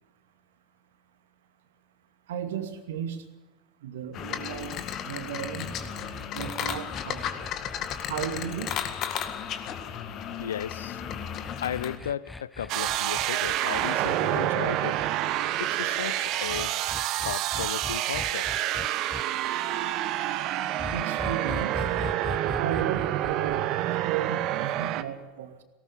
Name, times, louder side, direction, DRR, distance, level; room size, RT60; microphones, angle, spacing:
voice 1, 2.3-3.2 3.8-4.7 5.1-5.7 6.3-7.3 8.1-8.8 20.9-21.8 22.6-23.7 24.0-25.6, right 8 dB, 65° right, 2.4 m, -34 dB
sound 1, 4.1-12.0, left 8 dB, 40° left, 2.0 m, -34 dB
sound 2, 5.6-10.1 11.0-15.1 16.5-19.2 20.8-23.6, left 3 dB, 10° left, 0.7 m, -41 dB
voice 2, 10.4-11.0 11.6-15.1 15.6-16.7 17.2-18.7, left 9 dB, 70° left, 0.6 m, -35 dB
sound 3, 12.7-25.0, right 13 dB, 45° right, 1.2 m, -28 dB
18.5 x 18.5 x 8.3 m
figure-of-eight pair, 80°, 0 cm